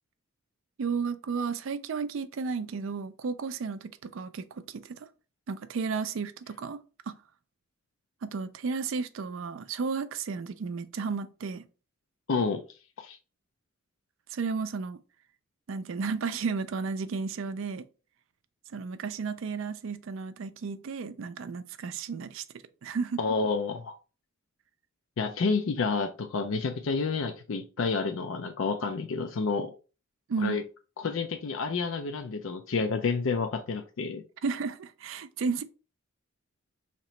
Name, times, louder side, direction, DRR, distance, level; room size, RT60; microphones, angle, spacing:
voice 1, 0.8-5.1 5.5-6.8 7.1-7.2 8.2-11.6 14.3-15.0 15.7-17.9 18.7-22.4 22.8-23.2 30.3-30.6 34.4-35.6, right 5 dB, 70° right, 0.4 m, -33 dB
voice 2, 12.3-12.6 13.0-13.2 23.2-23.9 25.2-29.7 30.4-30.6 31.0-34.2, left 4 dB, 70° left, 0.4 m, -29 dB
2.9 x 2.9 x 4.2 m
head